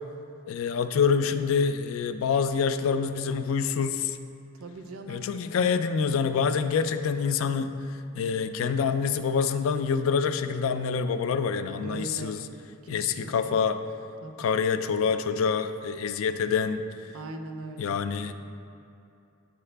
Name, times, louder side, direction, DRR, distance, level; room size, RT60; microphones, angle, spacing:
voice 1, 0.5-4.2 5.1-7.7 8.1-12.4 12.9-13.8 14.4-16.8 17.8-18.3, left 6 dB, 70° left, 10 dB, 0.3 m, -26 dB
voice 2, 4.6-5.3 11.8-12.4 12.9-13.6 14.2-14.3 17.1-18.0, right 3 dB, 85° right, 5 dB, 0.5 m, -40 dB
7.8 x 4.8 x 3.3 m, 2.7 s
head